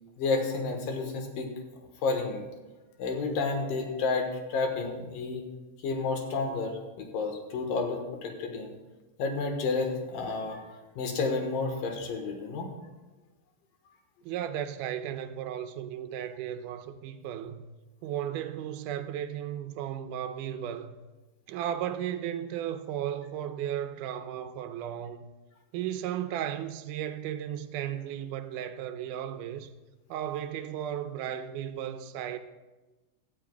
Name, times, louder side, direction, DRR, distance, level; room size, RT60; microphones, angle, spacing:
voice 1, 0.2-1.5 2.0-2.5 3.0-5.4 5.8-8.7 9.2-12.7, left 4 dB, 80° left, 3.0 m, -31 dB
voice 2, 14.3-17.7 18.0-21.0 21.5-25.3 25.7-29.7 30.1-32.4, right 10 dB, 80° right, 2.1 m, -35 dB
17.5 x 13.0 x 2.3 m
omnidirectional pair, 3.9 m